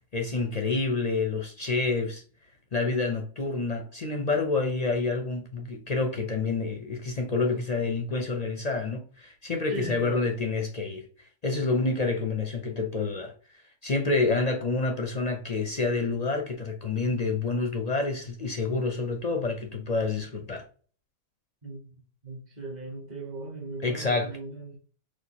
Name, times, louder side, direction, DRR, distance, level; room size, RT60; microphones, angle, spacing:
voice 1, 0.1-2.2 2.7-13.3 13.8-20.6 23.8-24.4, left 3 dB, 45° left, 0.5 m, -28 dB
voice 2, 9.7-10.3 21.6-21.9 22.2-24.8, right 2 dB, 35° right, 1.1 m, -38 dB
6.4 x 2.5 x 2.8 m
omnidirectional pair, 1.4 m